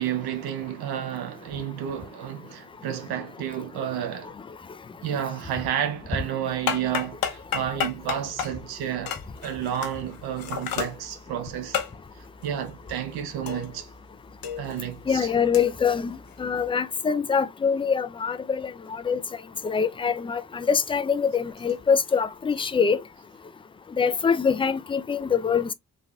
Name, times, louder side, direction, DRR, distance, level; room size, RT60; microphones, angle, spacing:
voice 1, 0.0-4.3 5.0-11.8 12.2-13.9 14.6-15.3, right 10 dB, 80° right, 0.6 m, -31 dB
sound 1, 6.5-14.0 14.3-16.7, left 8 dB, 65° left, 0.7 m, -33 dB
voice 2, 15.1-19.2 19.6-23.0 23.9-25.7, left 6 dB, 15° left, 0.3 m, -24 dB
3.2 x 2.3 x 2.2 m
hypercardioid pair, 40°, 37 cm